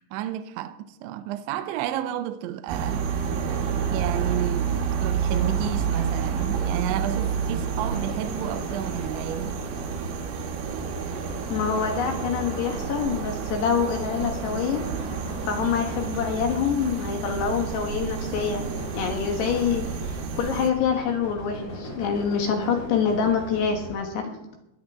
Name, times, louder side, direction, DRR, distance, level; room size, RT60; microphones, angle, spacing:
voice 1, 0.1-3.1 3.9-9.6, right 12 dB, 80° right, 2.8 m, -31 dB
sound 1, 2.7-20.7, right 7 dB, 65° right, 2.6 m, -30 dB
sound 2, 5.2-24.0, left 1 dB, 35° left, 4.8 m, -38 dB
voice 2, 11.5-14.8 15.5-18.7 19.0-24.4, left 6 dB, 65° left, 3.1 m, -26 dB
19.5 x 11.5 x 3.7 m
omnidirectional pair, 5.9 m